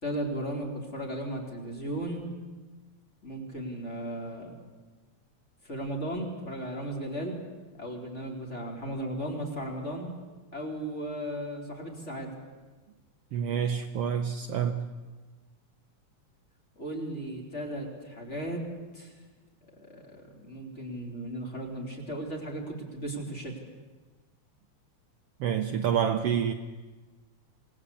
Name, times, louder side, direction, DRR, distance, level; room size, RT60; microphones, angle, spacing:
voice 1, 0.0-2.3 3.2-4.5 5.6-7.4 7.7-10.1 10.5-12.3 16.8-18.6 18.9-19.1 19.7-23.5, right 1 dB, 20° left, 0 dB, 4.1 m, -36 dB
voice 2, 13.3-14.9 25.4-26.5, right 8 dB, 65° right, 6 dB, 1.8 m, -28 dB
27.0 x 19.5 x 8.5 m, 1.3 s
omnidirectional pair, 3.3 m